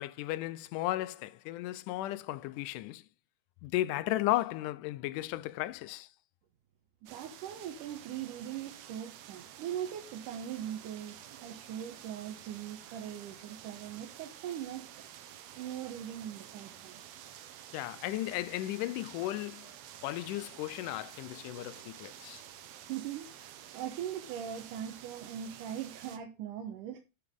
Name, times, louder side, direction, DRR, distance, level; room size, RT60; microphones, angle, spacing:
voice 1, 0.0-3.0 3.6-6.1 17.7-19.7 20.0-22.4, left 16 dB, 85° left, 2.1 m, -35 dB
sound 1, 7.1-26.2, right 10 dB, 70° right, 1.7 m, -50 dB
voice 2, 7.1-15.0 15.6-17.0 22.9-27.0, right 10 dB, 90° right, 2.6 m, -40 dB
10.0 x 5.9 x 3.6 m
omnidirectional pair, 3.6 m